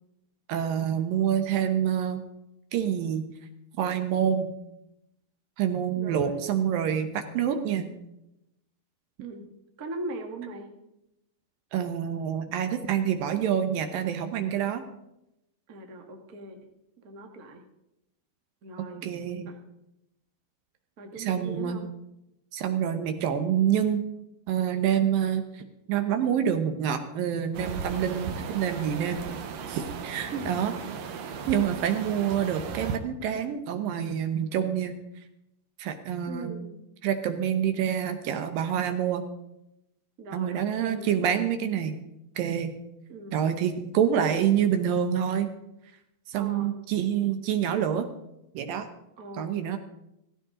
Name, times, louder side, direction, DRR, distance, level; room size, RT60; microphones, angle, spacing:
voice 1, 0.5-2.2 2.7-3.3 3.8-4.5 5.6-7.9 11.7-14.8 18.8-19.5 21.2-21.8 22.5-24.0 24.5-25.6 25.9-29.2 29.7-30.7 31.5-35.0 35.8-36.5 37.0-39.2 40.3-42.0 42.4-42.7 43.3-45.5 46.3-48.1 48.5-48.9 49.4-49.8, right 9 dB, 75° right, 7 dB, 2.5 m, -27 dB
voice 2, 5.9-6.4 9.2-9.4 9.8-10.7 15.7-16.6 17.0-17.6 18.6-19.0 19.4-19.5 21.0-21.9 30.3-30.5 36.3-36.7 40.2-41.1 43.1-43.4 46.3-46.7 49.2-49.8, right 2 dB, 50° right, 2 dB, 1.0 m, -40 dB
sound 1, 27.5-33.0, right 6 dB, 90° right, 1.5 m, -36 dB
16.0 x 15.0 x 3.8 m, 0.87 s
omnidirectional pair, 4.4 m